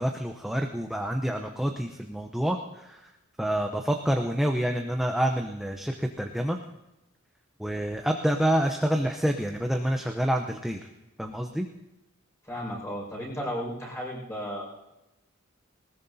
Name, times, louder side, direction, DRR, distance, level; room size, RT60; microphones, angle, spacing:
voice 1, 0.0-3.1 3.4-6.6 7.6-10.9 11.2-11.7, equal, ahead, 3 dB, 0.6 m, -27 dB
voice 2, 12.4-14.6, equal, 15° left, -3 dB, 5.4 m, -34 dB
20.5 x 19.5 x 2.7 m, 0.97 s
head